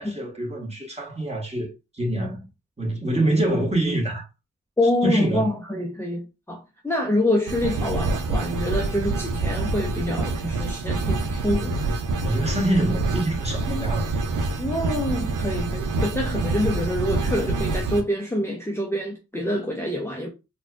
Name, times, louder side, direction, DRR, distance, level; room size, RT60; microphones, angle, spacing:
voice 1, 0.0-1.7 1.9-2.5 2.8-4.3 5.0-5.5 12.2-14.1, right 1 dB, 20° right, 1.6 m, -25 dB
voice 2, 4.8-11.9 13.7-13.8 14.6-20.3, left 1 dB, 10° left, 0.7 m, -26 dB
sound 1, 7.5-18.0, right 3 dB, 80° right, 0.6 m, -26 dB
4.0 x 2.4 x 2.4 m
cardioid pair, 50°, 31 cm